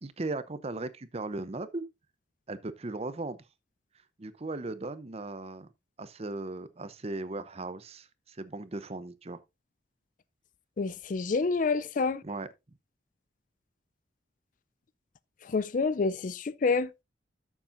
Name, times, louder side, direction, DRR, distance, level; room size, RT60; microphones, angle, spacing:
voice 1, 0.0-1.9 2.5-3.4 4.2-5.7 6.0-9.4 12.2-12.5, right 2 dB, 35° right, 0.7 m, -37 dB
voice 2, 10.8-12.2 15.4-17.0, left 4 dB, 45° left, 0.4 m, -28 dB
13.0 x 7.2 x 2.6 m
head